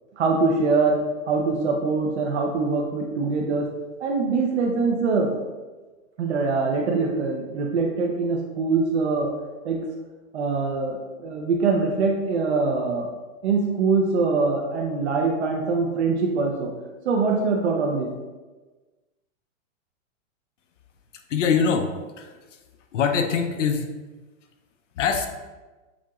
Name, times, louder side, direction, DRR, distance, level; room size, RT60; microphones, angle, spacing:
voice 1, 0.2-1.0 1.3-3.7 4.0-5.4 6.2-9.3 9.6-9.8 10.3-13.1 13.4-16.7 17.0-18.1, right 4 dB, 55° right, 1 dB, 0.6 m, -23 dB
voice 2, 21.3-21.9 22.2-22.4 22.9-23.9 25.0-25.3, left 6 dB, 65° left, 5 dB, 0.6 m, -23 dB
7.1 x 2.9 x 2.3 m, 1.2 s
supercardioid pair, 175°, 40 cm